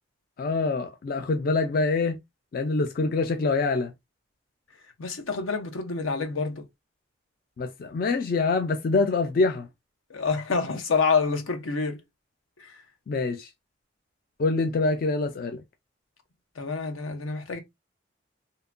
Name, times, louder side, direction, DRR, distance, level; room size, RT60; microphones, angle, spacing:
voice 1, 0.4-2.2 2.5-3.9 7.6-9.7 13.1-13.5 14.4-15.6, left 3 dB, 45° left, 0.3 m, -25 dB
voice 2, 5.0-6.6 10.1-12.0 12.6-12.8 16.6-17.6, left 4 dB, 85° left, 0.6 m, -27 dB
2.8 x 2.1 x 2.4 m
head